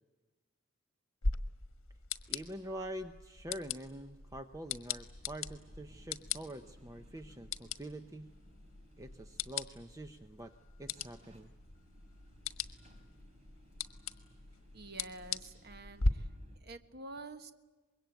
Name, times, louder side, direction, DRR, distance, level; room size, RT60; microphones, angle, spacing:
sound 1, 1.2-16.1, left 4 dB, 75° left, 1.5 m, -40 dB
voice 1, 2.3-8.3 9.0-10.5 10.8-11.5, right 1 dB, 15° right, 7 dB, 0.8 m, -45 dB
sound 2, 4.8-16.6, equal, 30° right, 3.6 m, -63 dB
voice 2, 14.7-16.3 16.6-17.5, right 2 dB, 50° right, 8 dB, 1.4 m, -48 dB
25.0 x 22.0 x 9.1 m, 1.3 s
head